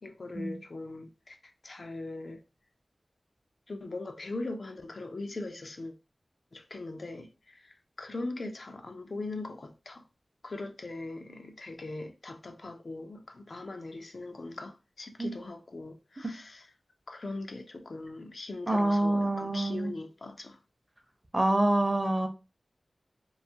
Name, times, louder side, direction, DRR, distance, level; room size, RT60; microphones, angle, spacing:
voice 1, 0.0-2.4 3.7-5.9 6.5-10.0 10.4-16.7 17.1-20.6, left 2 dB, 65° left, 0.4 m, -40 dB
voice 2, 18.7-19.9 21.3-22.3, right 1 dB, 25° right, 0.6 m, -26 dB
2.6 x 2.3 x 2.7 m
wide cardioid pair, 55°, 0 cm